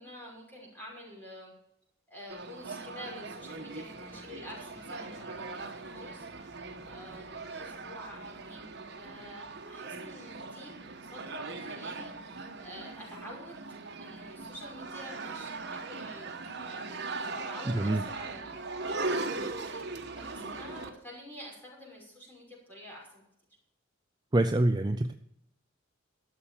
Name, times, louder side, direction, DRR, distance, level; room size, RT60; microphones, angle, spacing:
voice 1, 0.0-1.5 2.1-6.6 6.9-10.7 11.1-13.6 14.0-23.2, left 1 dB, 10° left, -4 dB, 5.7 m, -48 dB
sound 1, 2.3-20.9, right 3 dB, 55° right, 1.3 m, -40 dB
voice 2, 24.3-25.1, right 1 dB, 20° right, 8 dB, 0.4 m, -25 dB
12.5 x 7.1 x 7.2 m, 0.78 s
head